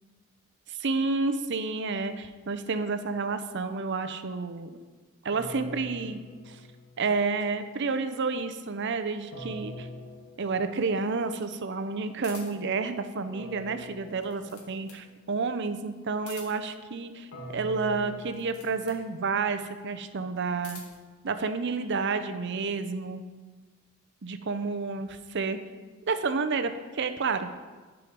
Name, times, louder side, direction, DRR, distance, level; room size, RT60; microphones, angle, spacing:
voice 1, 0.7-4.7 5.2-6.6 7.0-9.9 10.4-20.8 21.2-23.2 24.2-25.6 26.1-27.5, right 4 dB, 55° right, 10 dB, 0.6 m, -30 dB
sound 1, 5.3-7.4 9.3-11.2 13.3-15.2 17.3-19.5, equal, 60° left, 1.5 m, -44 dB
sound 2, 12.2-12.7 14.0-15.1 16.1-16.8 18.3-19.1 20.3-21.1, left 4 dB, 85° left, 1.8 m, -48 dB
10.5 x 5.0 x 5.2 m, 1.4 s
head